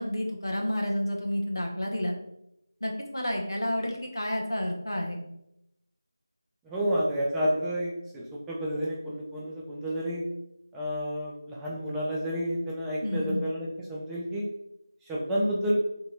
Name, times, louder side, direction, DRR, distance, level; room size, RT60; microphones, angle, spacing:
voice 1, 0.0-2.1 2.8-5.2 13.0-13.4, left 1 dB, 80° left, 0 dB, 1.0 m, -30 dB
voice 2, 6.6-10.2 10.7-14.5 15.0-15.7, equal, 5° right, -5 dB, 0.3 m, -30 dB
3.0 x 2.9 x 3.7 m, 0.82 s
figure-of-eight pair, 165°, 2 cm